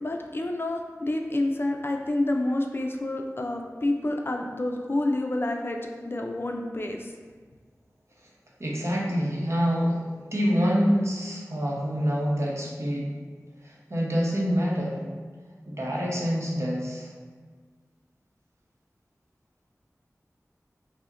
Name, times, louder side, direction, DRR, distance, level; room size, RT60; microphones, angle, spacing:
voice 1, 0.0-7.1, left 1 dB, 40° left, 3 dB, 0.3 m, -28 dB
voice 2, 8.6-13.3 13.6-15.0 15.7-17.1, equal, 55° right, -4 dB, 0.8 m, -26 dB
5.5 x 2.1 x 2.5 m, 1.5 s
wide cardioid pair, 50°, 6 cm